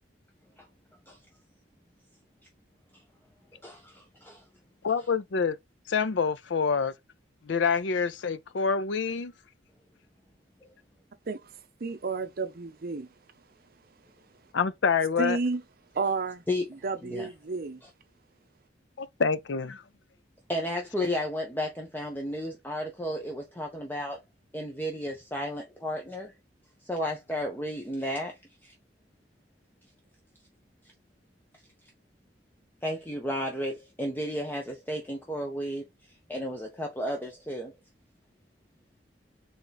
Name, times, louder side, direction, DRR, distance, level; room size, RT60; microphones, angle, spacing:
voice 1, 3.6-4.4 16.5-16.7 17.0-17.3 20.5-24.2 24.5-26.3 26.9-28.7 32.8-35.9 36.3-37.7, equal, 10° left, 0.7 m, -33 dB
voice 2, 4.8-5.6 5.9-6.9 7.5-9.3 14.5-15.4 19.0-19.8, left 5 dB, 80° left, 0.5 m, -26 dB
voice 3, 11.8-13.1 15.2-15.6 15.9-16.4 16.7-17.8, right 4 dB, 55° right, 0.6 m, -31 dB
3.7 x 3.5 x 4.0 m
head